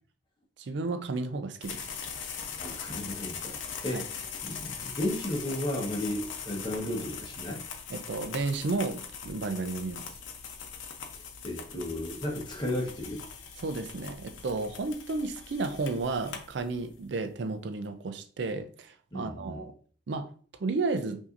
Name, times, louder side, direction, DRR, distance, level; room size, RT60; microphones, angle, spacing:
voice 1, 0.6-1.9 3.9-4.0 7.9-10.0 13.6-19.7 20.1-20.3 20.6-21.2, right 3 dB, 70° right, 0.4 m, -32 dB
sound 1, 1.6-17.0, left 6 dB, 85° left, 0.7 m, -41 dB
voice 2, 2.6-4.2 4.4-7.6 11.1-13.2 19.1-19.6, left 1 dB, 25° left, 1.1 m, -34 dB
5.7 x 2.7 x 2.5 m
head